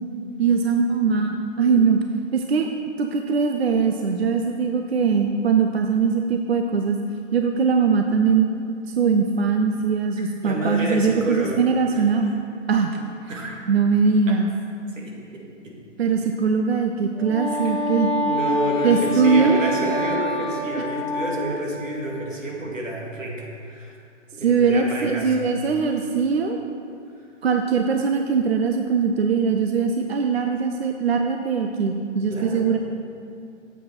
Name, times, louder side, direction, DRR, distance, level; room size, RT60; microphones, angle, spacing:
voice 1, 0.4-2.0 2.3-2.7 3.0-7.0 7.3-8.5 9.0-12.3 12.7-13.0 13.7-14.5 16.0-18.1 18.8-19.6 24.4-26.6 27.4-32.8, right 5 dB, 55° right, 4 dB, 0.5 m, -21 dB
voice 2, 10.4-11.7 11.9-12.0 12.9-13.0 13.3-13.6 14.3-14.4 14.9-15.7 17.5-17.7 18.2-24.0 24.3-25.4 32.3-32.7, right 1 dB, 85° right, -1 dB, 2.1 m, -29 dB
Wind instrument woodwind instrument, 17.1-21.8, equal, 5° right, 0.6 m, -26 dB
8.9 x 7.5 x 4.4 m, 2.5 s
hypercardioid pair, 165°, 38 cm